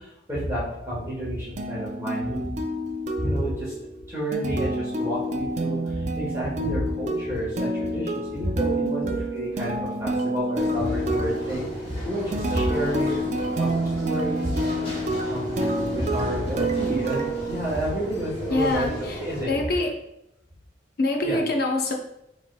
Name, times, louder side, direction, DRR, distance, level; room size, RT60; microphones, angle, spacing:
voice 1, 0.0-2.5 3.2-3.7 4.1-13.2 13.6-14.7 15.3-19.6 21.2-21.4, equal, 15° right, -8 dB, 1.2 m, -30 dB
sound 1, 1.6-18.3, right 1 dB, 40° right, 0.4 m, -28 dB
sound 2, 10.5-19.5, right 1 dB, 30° left, 1.6 m, -36 dB
voice 2, 18.5-19.2 19.5-19.9 21.0-21.9, left 2 dB, 55° left, 1 dB, 0.7 m, -25 dB
7.1 x 3.1 x 2.2 m, 0.84 s
head